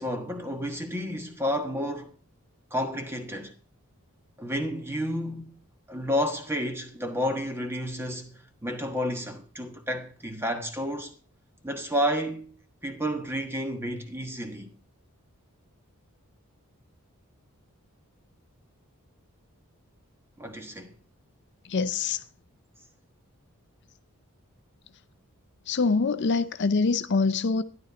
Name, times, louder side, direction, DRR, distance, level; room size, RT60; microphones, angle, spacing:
voice 1, 0.0-2.1 2.7-3.5 4.4-5.5 5.9-11.1 11.6-12.5 12.8-14.7 20.4-21.0, equal, 10° right, 1.3 m, -31 dB
voice 2, 21.7-22.2 25.7-27.6, left 4 dB, 50° left, 0.5 m, -24 dB
12.5 x 10.5 x 4.1 m
head